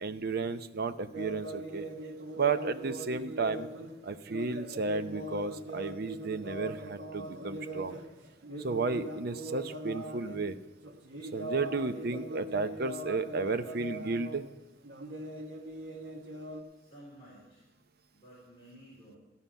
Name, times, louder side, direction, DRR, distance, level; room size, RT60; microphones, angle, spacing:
voice 1, 0.0-1.9 2.3-3.7 4.0-8.0 8.6-10.6 11.3-14.4, right 4 dB, 55° right, 9 dB, 0.6 m, -33 dB
sound 1, 1.1-10.5 10.8-14.5 14.8-16.6, right 1 dB, 80° right, 1.4 m, -41 dB
voice 2, 16.7-17.7 18.1-19.2, equal, 30° left, -7 dB, 3.9 m, -53 dB
14.5 x 5.6 x 9.0 m, 0.99 s
head